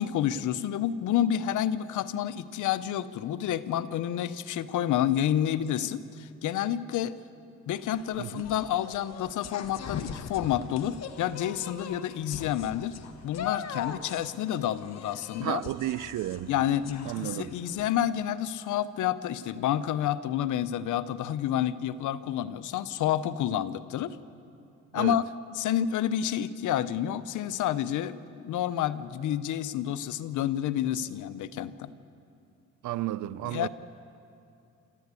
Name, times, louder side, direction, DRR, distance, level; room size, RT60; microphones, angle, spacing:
voice 1, 0.0-7.1 7.7-13.0 13.2-15.6 16.5-24.2 24.9-25.2 25.5-31.9 33.4-33.7, left 11 dB, 80° left, 0.8 m, -29 dB
sound 1, 7.7-17.9, left 8 dB, 60° left, 1.4 m, -41 dB
voice 2, 15.4-16.5 17.1-17.6 24.9-25.2 32.8-33.7, right 14 dB, 75° right, 0.6 m, -32 dB
27.0 x 13.5 x 8.3 m
cardioid pair, 90°, 30 cm